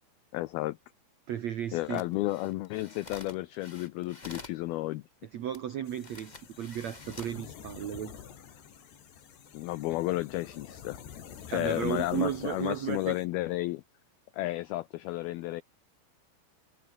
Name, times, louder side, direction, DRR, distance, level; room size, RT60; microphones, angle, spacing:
voice 1, 0.3-0.8 1.7-5.0 9.5-11.0 11.5-13.8 14.3-15.6, left 18 dB, 85° left, 2.1 m, -32 dB
voice 2, 1.3-2.0 5.3-8.2 11.5-13.2, right 10 dB, 80° right, 1.6 m, -34 dB
sound 1, 1.8-4.6 5.5-5.6 6.0-7.4 8.0-8.2, left 2 dB, 25° left, 0.9 m, -49 dB
sound 2, 5.8-13.3, left 8 dB, 70° left, 5.2 m, -49 dB
omnidirectional pair, 5.2 m